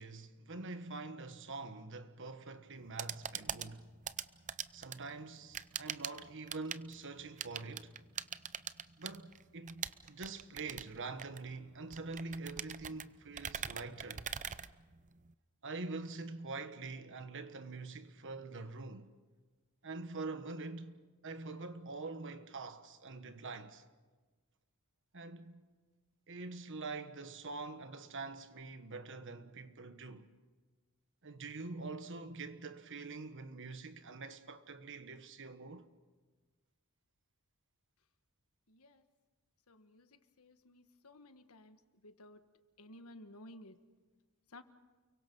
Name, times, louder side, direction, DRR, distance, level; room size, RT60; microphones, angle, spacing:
voice 1, 0.0-3.9 4.7-8.0 9.0-14.3 15.6-19.1 19.8-23.8 25.1-25.6 26.3-30.3 31.2-35.9, right 3 dB, 60° right, 1.4 m, -45 dB
sound 1, 2.7-15.3, right 8 dB, 35° right, 0.6 m, -44 dB
voice 2, 38.7-39.0 39.7-40.1 40.4-42.4 42.8-43.8 44.5-44.6, left 1 dB, 75° left, 1.5 m, -55 dB
29.5 x 23.5 x 5.4 m
head